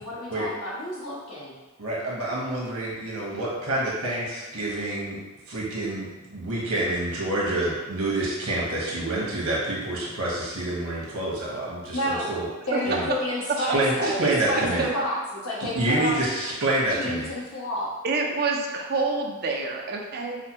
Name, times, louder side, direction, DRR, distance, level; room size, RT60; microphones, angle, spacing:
voice 1, 0.0-1.5 11.9-12.3 12.7-16.3 16.9-17.9, left 1 dB, 80° left, -7 dB, 1.2 m, -30 dB
voice 2, 1.8-5.2 5.5-12.5 12.8-13.1 13.6-14.9 15.7-17.3, right 1 dB, 80° right, -4 dB, 1.2 m, -27 dB
voice 3, 14.6-14.9 18.0-20.4, right 3 dB, 45° right, 1 dB, 0.5 m, -27 dB
4.9 x 2.2 x 3.0 m, 1.2 s
head